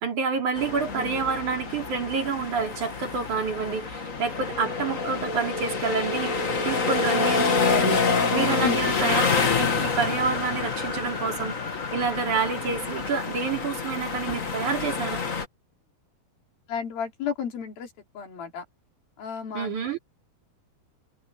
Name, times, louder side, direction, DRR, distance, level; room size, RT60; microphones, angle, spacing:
voice 1, 0.0-8.1 8.3-11.6 11.9-15.2 19.5-20.0, right 5 dB, 55° right, 4.7 m, -28 dB
sound 1, 0.6-15.5, left 4 dB, 35° left, 1.3 m, -27 dB
voice 2, 16.7-17.9 18.1-18.6 19.2-19.7, left 7 dB, 75° left, 5.0 m, -32 dB
omnidirectional pair, 4.2 m